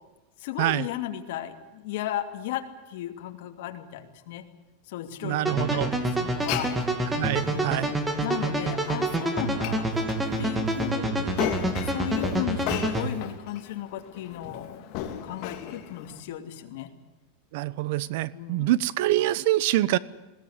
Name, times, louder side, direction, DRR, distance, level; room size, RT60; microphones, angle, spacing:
voice 1, 0.4-4.5 4.9-6.8 7.4-9.9 10.4-14.9 15.2-16.9 18.3-18.7, left 12 dB, 60° left, 5 dB, 2.7 m, -35 dB
voice 2, 5.2-6.0 7.1-7.9 17.5-20.0, right 15 dB, 55° right, 19 dB, 1.0 m, -25 dB
sound 1, 5.5-13.1, right 1 dB, 5° right, 2.6 m, -27 dB
Glass, 6.3-16.2, left 10 dB, 45° left, 2.8 m, -37 dB
21.0 x 17.0 x 9.9 m, 1.1 s
supercardioid pair, 155°, 0 cm